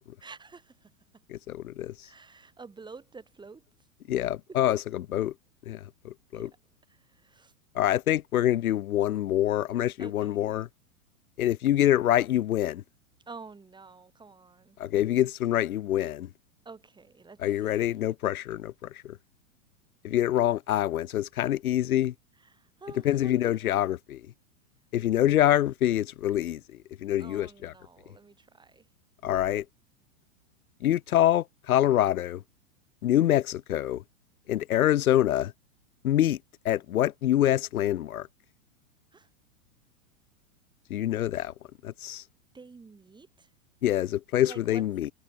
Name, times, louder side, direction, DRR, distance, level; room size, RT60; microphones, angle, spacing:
voice 1, 0.2-1.2 2.0-3.6 6.3-6.5 6.9-7.5 10.0-10.6 13.3-14.8 16.6-18.0 22.4-23.6 27.2-28.9 39.1-39.3 42.5-43.5 44.4-44.8, right 4 dB, 10° right, 3.1 m, -49 dB
voice 2, 1.3-2.1 4.1-5.3 5.7-6.5 7.7-10.7 11.4-12.8 14.8-16.3 17.4-19.2 20.0-22.1 23.0-24.2 24.9-26.6 27.0-27.7 29.2-29.6 30.8-32.4 33.0-34.0 34.5-35.5 36.0-36.4 36.6-38.3 40.9-41.5 41.8-42.2 43.8-45.1, left 12 dB, 80° left, 1.2 m, -26 dB
hypercardioid pair, 125°, 42 cm